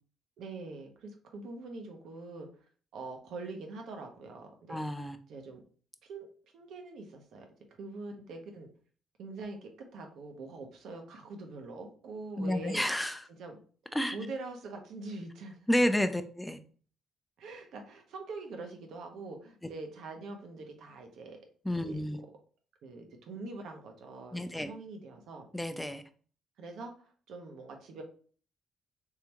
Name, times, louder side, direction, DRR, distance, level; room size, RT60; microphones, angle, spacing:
voice 1, 0.4-2.7 2.9-4.8 5.3-5.6 6.0-6.3 6.5-7.5 7.8-8.7 9.2-12.9 13.4-13.6 14.1-16.1 17.4-21.4 21.9-22.0 22.8-25.5 26.6-28.0, right 3 dB, 75° right, 4 dB, 0.9 m, -44 dB
voice 2, 4.7-5.2 12.4-13.2 13.9-14.2 15.7-16.6 21.7-22.2 24.3-24.7 25.5-26.0, left 1 dB, 5° left, 9 dB, 0.5 m, -30 dB
3.7 x 3.3 x 3.0 m, 0.43 s
cardioid pair, 90°, 0 cm